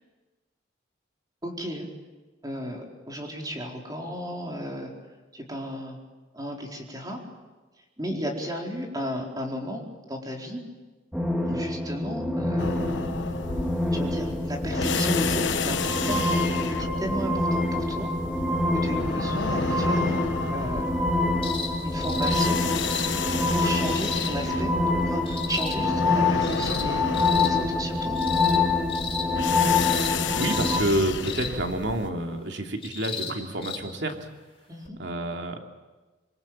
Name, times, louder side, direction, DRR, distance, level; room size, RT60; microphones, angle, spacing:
voice 1, 1.4-1.9 2.4-4.9 5.3-6.0 6.3-7.2 8.0-10.6 11.5-12.8 13.9-18.1 18.8-21.1 21.8-22.6 23.5-24.7 25.0-28.2 34.7-35.0, equal, 20° right, 0 dB, 4.5 m, -34 dB
sound 1, 11.1-30.8, left 2 dB, 5° right, 2.1 m, -26 dB
sound 2, 12.6-32.1, left 4 dB, 75° left, 1.1 m, -32 dB
sound 3, 21.4-21.7 22.0-22.4 22.7-23.1 23.9-24.3 25.3-25.7 26.4-26.8 27.1-27.5 28.2-28.6 28.9-29.3 29.7-30.1 30.4-30.8 31.2-31.5 32.8-33.3 33.6-33.8 34.9-35.0, left 5 dB, 30° left, 3.9 m, -33 dB
voice 2, 29.9-34.3 35.0-35.6, right 1 dB, 70° right, 3 dB, 2.9 m, -29 dB
27.0 x 22.5 x 8.9 m, 1.2 s
head